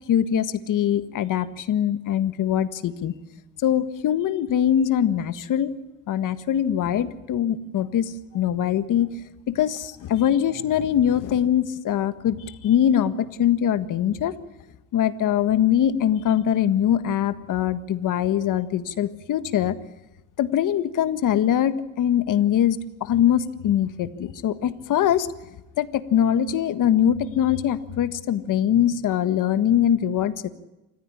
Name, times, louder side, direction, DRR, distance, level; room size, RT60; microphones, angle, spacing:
voice 1, 0.1-3.1 3.6-5.7 6.1-9.1 9.5-12.4 12.6-14.3 14.9-19.7 20.4-25.3 25.8-30.5, left 10 dB, 60° left, 11 dB, 1.6 m, -22 dB
28.0 x 15.0 x 10.0 m, 0.98 s
cardioid pair, 100°, 36 cm